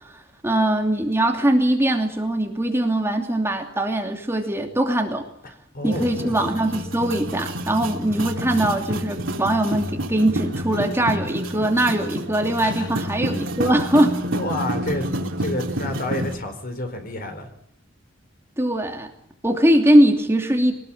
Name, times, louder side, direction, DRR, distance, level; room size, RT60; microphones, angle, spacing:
voice 1, 0.4-5.3 5.8-14.2 18.6-19.1 19.4-20.7, right 1 dB, 15° right, 3 dB, 2.8 m, -21 dB
voice 2, 5.4-6.4 12.6-12.9 14.3-15.1 15.4-17.5, left 1 dB, 50° left, 7 dB, 4.4 m, -30 dB
sound 1, 5.8-16.3, right 1 dB, 85° right, 2.9 m, -29 dB
23.0 x 19.5 x 8.7 m, 0.69 s
head